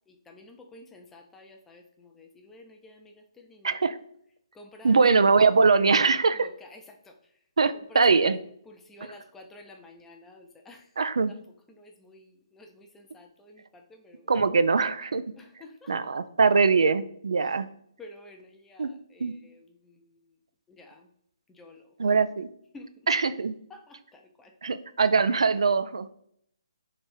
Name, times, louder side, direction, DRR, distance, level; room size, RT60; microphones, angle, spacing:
voice 1, 0.1-4.0 4.5-5.0 5.3-5.4 6.3-7.3 7.9-10.9 11.3-11.4 11.7-14.3 15.4-15.9 17.4-17.7 18.0-20.3 20.7-21.1 21.5-21.9 22.7-23.1 23.7-24.5, left 2 dB, 10° left, 3 dB, 0.6 m, -51 dB
voice 2, 3.6-4.0 4.8-6.5 7.6-8.4 11.0-11.3 14.3-15.2 15.9-17.7 18.8-18.9 19.2-19.3 22.0-22.5 23.1-23.5 24.6-26.1, right 4 dB, 75° right, 13 dB, 0.3 m, -22 dB
3.4 x 3.3 x 4.4 m, 0.67 s
hypercardioid pair, 145°, 3 cm